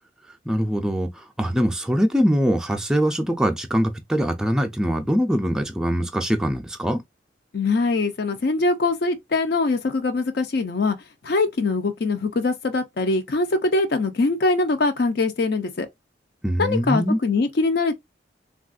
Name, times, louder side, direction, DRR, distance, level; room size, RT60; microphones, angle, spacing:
voice 1, 0.5-7.0 16.4-17.2, equal, 5° right, 0.4 m, -22 dB
voice 2, 7.5-11.0 11.2-15.9 16.6-18.0, left 3 dB, 60° left, 0.5 m, -22 dB
3.4 x 2.3 x 2.4 m
head